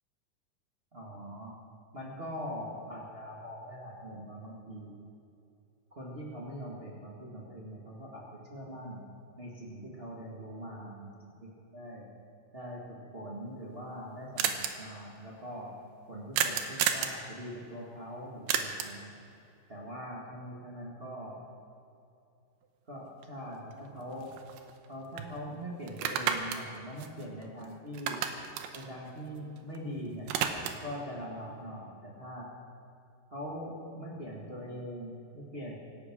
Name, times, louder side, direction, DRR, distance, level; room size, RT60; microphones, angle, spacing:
voice 1, 0.9-1.5 1.9-4.9 5.9-9.0 9.4-12.0 12.5-15.7 16.1-19.1 19.7-21.4 22.9-24.3 24.9-28.2 28.7-30.3 30.8-32.5 33.3-35.7, equal, 30° right, -4 dB, 1.0 m, -42 dB
sound 1, 13.4-13.5 13.7-13.8 14.0-14.1 14.4-14.7 16.3-17.2 18.5-19.0 23.2-23.3 23.7-24.9 25.2-25.3 25.9-27.7 27.9-29.8 30.1-30.9, right 8 dB, 85° right, 3.0 m, -32 dB
25.0 x 8.6 x 6.2 m, 2.6 s
omnidirectional pair, 4.5 m